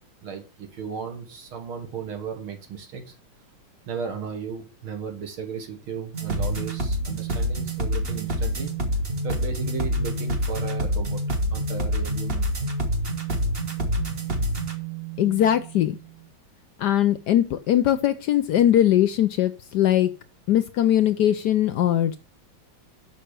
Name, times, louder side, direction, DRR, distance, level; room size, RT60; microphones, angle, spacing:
voice 1, 0.2-3.0 3.9-8.7 9.2-11.2 11.5-12.5, right 6 dB, 80° right, 4 dB, 2.5 m, -35 dB
sound 1, 6.1-16.0, equal, 30° right, 1.4 m, -27 dB
voice 2, 15.2-16.0 16.8-20.1 20.5-22.2, left 11 dB, 75° left, 11 dB, 1.0 m, -20 dB
6.6 x 6.1 x 6.7 m, 0.34 s
omnidirectional pair, 2.3 m